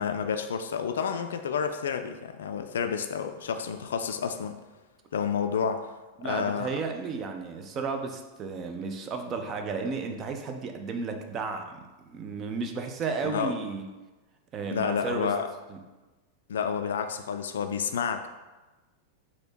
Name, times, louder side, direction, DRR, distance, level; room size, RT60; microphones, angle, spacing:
voice 1, 0.0-4.6 5.1-5.9 6.2-6.7 13.2-13.5 14.6-15.5 16.5-18.3, left 7 dB, 65° left, 7 dB, 0.3 m, -30 dB
voice 2, 6.2-13.9 14.5-15.4 15.7-15.8, right 4 dB, 30° right, 5 dB, 0.5 m, -33 dB
4.2 x 2.8 x 4.3 m, 1.2 s
figure-of-eight pair, 90°, 0 cm